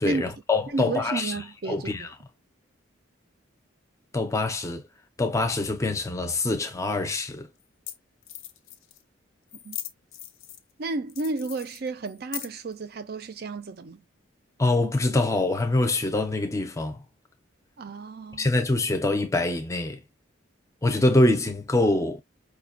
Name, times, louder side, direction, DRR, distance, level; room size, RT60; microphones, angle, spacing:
voice 1, 0.0-2.1 4.1-4.8 5.2-7.5 14.6-17.0 18.4-20.0 20.8-22.2, left 2 dB, 15° left, 0.5 m, -24 dB
voice 2, 0.7-2.1 9.6-9.8 10.8-14.0 17.8-18.5, right 3 dB, 50° right, 0.4 m, -32 dB
sound 1, 7.6-7.7 7.9-8.0 8.2-9.0 9.5-10.7 11.1-12.7, left 12 dB, 85° left, 0.6 m, -39 dB
5.0 x 2.3 x 2.4 m
head